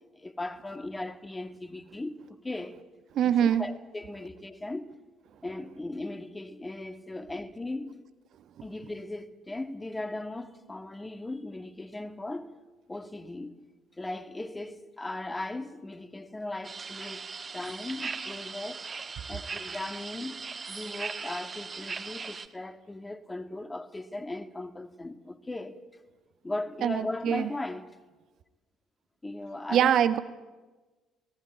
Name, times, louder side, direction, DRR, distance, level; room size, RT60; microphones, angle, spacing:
voice 1, 0.1-2.8 3.2-4.9 5.4-8.0 8.6-12.5 12.9-13.5 14.0-17.3 17.5-18.9 19.3-20.4 20.7-25.8 26.4-28.0 29.2-30.0, left 2 dB, 15° left, 2.2 m, -38 dB
voice 2, 3.1-3.7 26.8-27.5 29.7-30.2, right 10 dB, 55° right, 1.3 m, -24 dB
sound 1, 16.6-22.5, right 5 dB, 35° right, 1.5 m, -39 dB
24.5 x 19.0 x 9.0 m
figure-of-eight pair, 50°, 0 cm